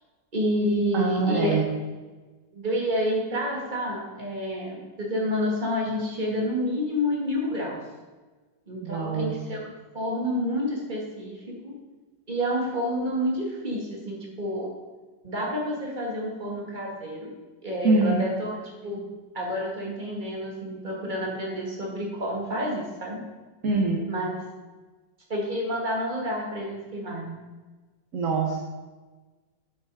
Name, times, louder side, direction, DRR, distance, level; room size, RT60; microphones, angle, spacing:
voice 1, 0.3-1.6 2.5-7.8 8.7-11.7 12.3-14.7 15.2-17.3 17.6-19.0 19.3-23.2 24.1-24.4 25.3-27.4, equal, 25° right, -2 dB, 2.3 m, -29 dB
voice 2, 0.9-1.7 8.8-9.3 17.8-18.3 23.6-24.0 28.1-28.6, right 3 dB, 50° right, -1 dB, 1.5 m, -24 dB
9.2 x 7.8 x 4.9 m, 1.3 s
omnidirectional pair, 2.0 m